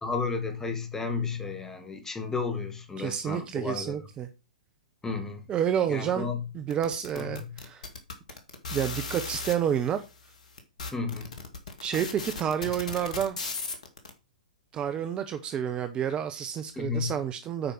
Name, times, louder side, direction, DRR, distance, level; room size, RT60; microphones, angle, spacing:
voice 1, 0.0-4.0 5.0-5.4 5.9-6.4 7.1-7.6 10.9-11.3 11.9-12.0 16.8-17.1, left 4 dB, 10° left, 1.9 m, -32 dB
voice 2, 3.0-4.3 5.5-6.3 6.5-7.8 8.7-10.0 11.8-13.4 14.7-17.7, right 9 dB, 25° right, 0.8 m, -29 dB
sound 1, 6.7-9.5 10.2-10.3 10.6-14.1, left 4 dB, 65° left, 2.1 m, -36 dB
8.8 x 5.0 x 6.0 m
figure-of-eight pair, 110°, 4 cm